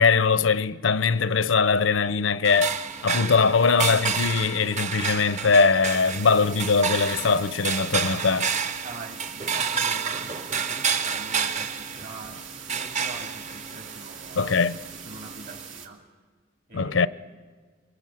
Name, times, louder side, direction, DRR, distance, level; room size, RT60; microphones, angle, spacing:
voice 1, 0.0-2.7 3.0-8.5 14.4-14.8 16.7-17.1, left 5 dB, 90° left, 0.7 m, -21 dB
sound 1, 2.4-15.7, right 6 dB, 40° right, 0.8 m, -30 dB
sound 2, 5.8-15.8, right 7 dB, 80° right, 2.4 m, -43 dB
voice 2, 8.8-14.5 15.0-16.0 16.7-17.1, right 2 dB, 55° right, 2.6 m, -44 dB
24.0 x 23.5 x 7.7 m
head